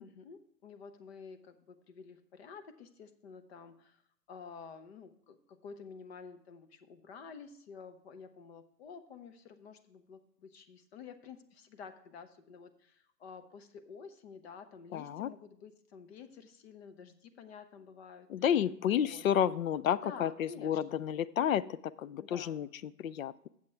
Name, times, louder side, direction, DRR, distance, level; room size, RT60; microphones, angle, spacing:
voice 1, 0.0-4.0 4.3-18.3 18.8-19.2 20.0-21.1 22.2-22.6, left 5 dB, 40° left, 9 dB, 1.0 m, -50 dB
voice 2, 14.9-15.3 18.3-21.7 22.0-22.7 23.0-23.5, left 9 dB, 55° left, 16 dB, 0.5 m, -31 dB
8.7 x 7.3 x 4.5 m, 0.68 s
hypercardioid pair, 135°, 49 cm